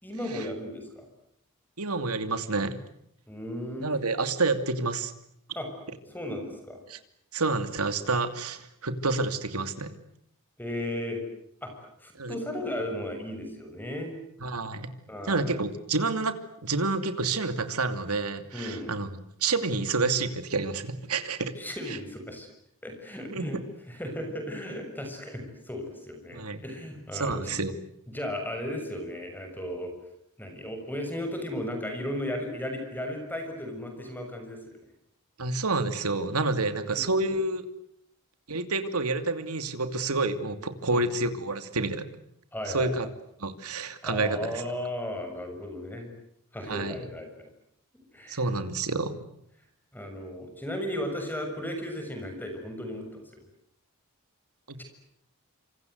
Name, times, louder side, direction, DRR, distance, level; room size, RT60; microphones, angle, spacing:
voice 1, 0.0-1.1 3.3-3.9 5.5-5.7 6.1-6.8 10.6-11.2 11.6-14.2 15.1-15.6 18.5-19.0 21.6-22.5 22.8-23.6 23.9-27.5 28.1-29.9 30.4-34.6 36.8-37.1 40.9-41.0 42.5-43.1 44.0-46.1 46.5-47.3 48.1-48.4 49.9-53.2 54.8-54.9, left 1 dB, 10° left, 5 dB, 6.7 m, -35 dB
voice 2, 1.8-2.8 3.8-5.1 6.9-7.0 7.3-9.9 12.2-12.4 14.4-14.9 15.2-16.3 16.6-21.5 21.9-22.0 23.3-23.6 26.3-26.6 27.1-27.7 35.4-37.7 38.5-42.1 42.7-43.1 43.4-44.4 46.7-47.0 48.3-49.1 54.7-54.8, right 3 dB, 85° right, 9 dB, 2.7 m, -29 dB
27.0 x 27.0 x 8.0 m, 0.74 s
head